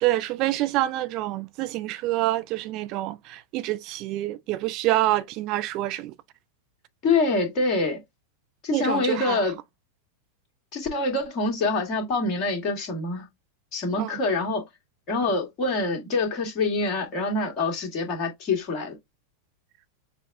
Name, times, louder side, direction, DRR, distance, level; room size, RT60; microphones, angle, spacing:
voice 1, 0.0-6.1 8.7-9.4 14.0-14.2, right 16 dB, 40° right, 0.3 m, -27 dB
voice 2, 7.0-8.0 8.6-9.6 10.7-13.3 13.7-14.6 15.1-19.0, left 3 dB, 35° left, 2.0 m, -25 dB
6.6 x 2.2 x 2.6 m
figure-of-eight pair, 90°, 0 cm